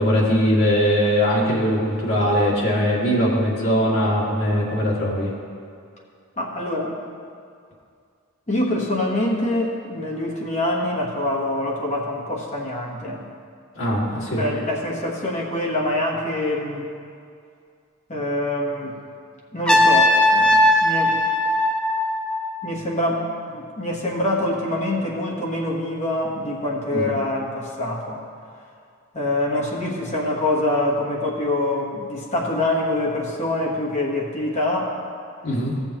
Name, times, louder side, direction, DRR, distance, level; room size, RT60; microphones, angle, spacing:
voice 1, 0.0-5.3 13.8-14.4 26.9-27.1 35.4-35.8, equal, 60° left, -5 dB, 2.0 m, -21 dB
voice 2, 6.4-7.0 8.5-13.2 14.4-16.9 18.1-19.0 19.5-21.2 22.6-28.2 29.1-34.9, left 1 dB, 35° left, -2 dB, 1.2 m, -25 dB
Trumpet, 19.7-22.6, left 1 dB, 5° left, 0.7 m, -18 dB
15.0 x 7.0 x 3.0 m, 2.3 s
head